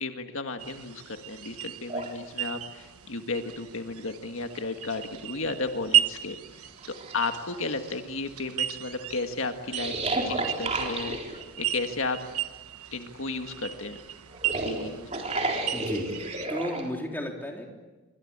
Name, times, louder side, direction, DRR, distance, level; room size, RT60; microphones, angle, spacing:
voice 1, 0.0-12.2 12.9-14.0 14.6-15.3, left 3 dB, 65° left, 6 dB, 1.8 m, -34 dB
sound 1, 0.6-16.5, right 11 dB, 85° right, 1.3 m, -34 dB
sound 2, 1.9-2.1 3.9-4.0 4.4-5.5 6.1-6.2 6.8-7.9 9.7-11.4 14.3-16.8, right 2 dB, 30° right, 3.9 m, -32 dB
voice 2, 15.7-16.1 16.5-17.7, left 1 dB, 10° left, 1 dB, 3.5 m, -33 dB
26.0 x 25.5 x 8.7 m, 1.2 s
head